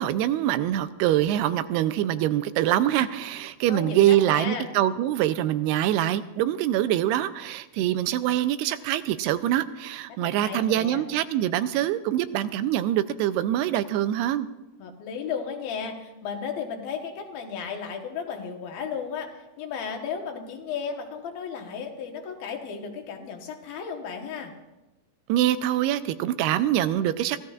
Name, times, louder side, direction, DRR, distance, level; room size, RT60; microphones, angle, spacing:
voice 1, 0.0-14.5 25.3-27.4, right 12 dB, 85° right, 12 dB, 2.6 m, -24 dB
voice 2, 3.7-4.7 10.2-11.0 14.8-24.5, left 6 dB, 70° left, 3 dB, 3.0 m, -34 dB
25.0 x 15.5 x 2.5 m, 1.0 s
omnidirectional pair, 4.6 m